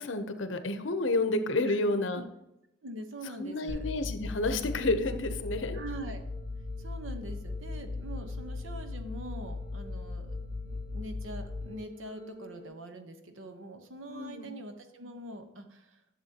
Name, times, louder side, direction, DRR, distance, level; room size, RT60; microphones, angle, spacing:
voice 1, 0.0-2.2 3.4-5.8 14.1-14.5, left 2 dB, 75° left, 9 dB, 0.8 m, -30 dB
voice 2, 2.8-3.9 5.7-6.2 6.8-16.0, right 1 dB, 90° right, 7 dB, 1.1 m, -44 dB
sound 1, 3.7-12.7, left 3 dB, 30° right, 2.6 m, -38 dB
11.0 x 6.9 x 2.9 m, 0.87 s
head